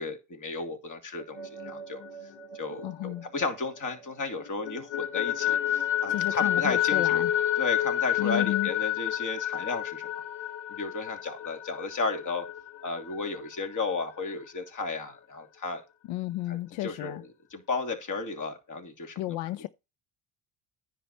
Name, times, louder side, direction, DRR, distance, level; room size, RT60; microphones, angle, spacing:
voice 1, 0.0-2.0 2.5-7.2 7.6-10.1 10.7-12.5 12.8-15.8 16.5-17.2 17.5-19.4, left 3 dB, 40° left, 2.9 m, -34 dB
sound 1, 1.2-4.0 4.4-13.8, left 11 dB, 70° left, 2.3 m, -30 dB
voice 2, 2.8-3.3 6.1-7.3 8.2-8.7 16.1-17.2 19.2-19.7, left 15 dB, 90° left, 0.7 m, -32 dB
10.0 x 6.8 x 4.3 m
cardioid pair, 115°, 46 cm